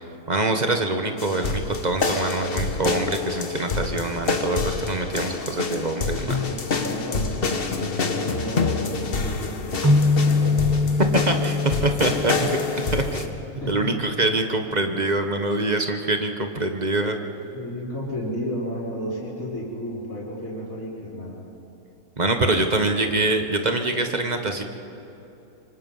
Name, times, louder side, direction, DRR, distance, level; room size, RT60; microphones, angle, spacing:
voice 1, 0.3-6.4 11.2-12.6 12.9-13.2 13.7-17.2 22.2-24.6, right 2 dB, 30° right, 5 dB, 1.2 m, -24 dB
sound 1, 1.2-13.3, left 4 dB, 40° left, 1.3 m, -27 dB
voice 2, 6.8-7.3 8.0-11.0 13.6-13.9 17.5-21.4, equal, 55° left, -10 dB, 5.1 m, -32 dB
sound 2, 9.8-13.4, left 3 dB, 15° right, 0.7 m, -23 dB
25.5 x 25.0 x 5.6 m, 3.0 s
omnidirectional pair, 1.6 m